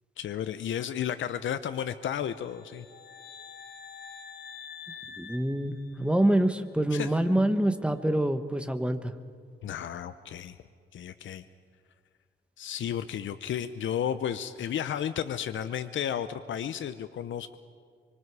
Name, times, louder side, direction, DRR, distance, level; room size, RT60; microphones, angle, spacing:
voice 1, 0.2-2.9 6.9-7.1 9.6-10.6 10.9-11.4 12.6-17.6, left 9 dB, 80° left, 11 dB, 0.7 m, -33 dB
sound 1, 2.4-6.4, left 6 dB, 55° left, 1.4 m, -46 dB
voice 2, 5.2-9.1, right 1 dB, 5° right, 9 dB, 1.2 m, -26 dB
25.0 x 24.5 x 4.8 m, 2.1 s
cardioid pair, 100°, 19 cm